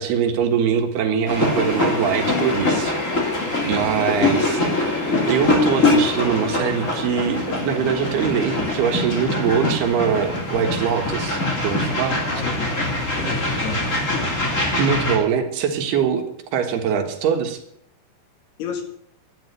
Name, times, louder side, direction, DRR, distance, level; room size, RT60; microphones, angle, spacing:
voice 1, 0.0-3.0 3.6-4.9 5.3-12.2 14.8-16.3 16.5-17.6, right 7 dB, 70° right, 6 dB, 3.4 m, -22 dB
sound 1, 1.3-15.2, left 2 dB, 20° left, 2.6 m, -23 dB
voice 2, 12.3-12.8 13.2-14.5 18.6-18.8, left 4 dB, 70° left, 6 dB, 4.1 m, -32 dB
12.0 x 11.5 x 8.2 m, 0.70 s
omnidirectional pair, 4.8 m